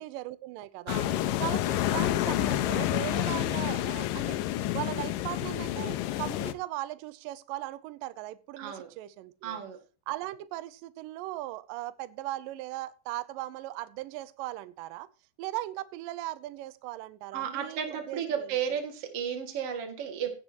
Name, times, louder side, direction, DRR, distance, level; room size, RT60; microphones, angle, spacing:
voice 1, 0.0-0.9 1.4-4.4 4.7-9.6 10.1-15.1 15.4-18.6, right 16 dB, 85° right, 1.9 m, -38 dB
sound 1, 0.9-6.5, left 14 dB, 90° left, 2.0 m, -29 dB
voice 2, 0.9-1.4 8.6-8.9 9.4-9.8 17.3-20.3, right 8 dB, 45° right, 2.6 m, -34 dB
16.0 x 9.5 x 2.9 m
omnidirectional pair, 4.8 m